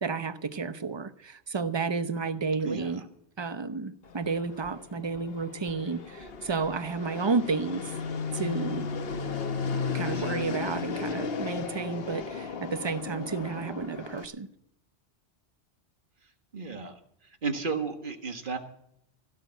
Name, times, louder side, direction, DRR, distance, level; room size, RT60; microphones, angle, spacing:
voice 1, 0.0-3.0 3.4-7.9 8.3-8.9 9.9-14.5, right 4 dB, 25° right, 0.7 m, -31 dB
Fixed-wing aircraft airplane, 4.0-14.2, left 5 dB, 60° left, 1.2 m, -35 dB
voice 2, 16.5-17.0 17.4-18.6, right 5 dB, 45° right, 1.7 m, -33 dB
16.5 x 6.9 x 9.3 m
omnidirectional pair, 1.2 m